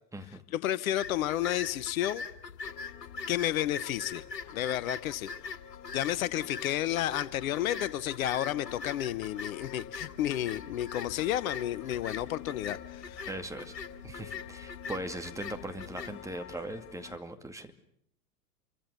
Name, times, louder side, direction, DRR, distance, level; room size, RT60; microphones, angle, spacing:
voice 1, 0.5-2.2 3.3-4.2 4.5-5.3 5.9-13.3, left 13 dB, 55° left, 16 dB, 1.1 m, -31 dB
sound 1, 1.0-16.2, left 5 dB, 80° left, 2.2 m, -42 dB
sound 2, 2.6-17.2, left 11 dB, 35° left, 1.6 m, -50 dB
voice 2, 13.3-13.7 14.0-17.7, right 1 dB, 5° right, 6 dB, 2.2 m, -40 dB
28.0 x 24.5 x 7.0 m, 0.72 s
figure-of-eight pair, 95°, 49 cm